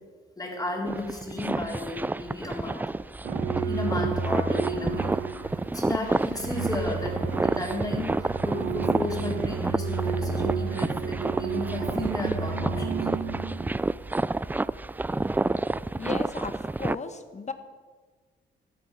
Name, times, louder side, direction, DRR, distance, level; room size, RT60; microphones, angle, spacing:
voice 1, 0.4-2.8 3.6-5.2 5.4-13.0, left 2 dB, 20° left, 0 dB, 4.2 m, -34 dB
sound 1, 0.8-17.0, right 2 dB, 10° right, 0.3 m, -29 dB
sound 2, 3.2-13.8, right 5 dB, 90° right, 1.3 m, -32 dB
voice 2, 16.0-16.5 16.8-17.5, left 5 dB, 35° left, 10 dB, 1.5 m, -35 dB
13.0 x 9.2 x 9.2 m, 1.4 s
cardioid pair, 90°, 20 cm